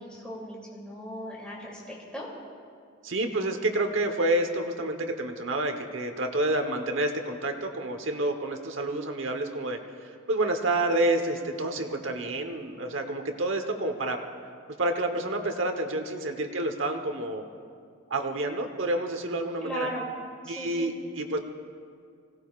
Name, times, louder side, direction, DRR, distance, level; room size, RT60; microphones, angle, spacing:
voice 1, 0.0-2.3 19.6-20.0 20.4-20.9, equal, 5° left, -5 dB, 2.8 m, -37 dB
voice 2, 3.0-14.2 14.8-17.4 18.1-19.9 20.4-21.4, right 2 dB, 65° right, 5 dB, 1.1 m, -29 dB
25.5 x 17.5 x 2.4 m, 2.2 s
head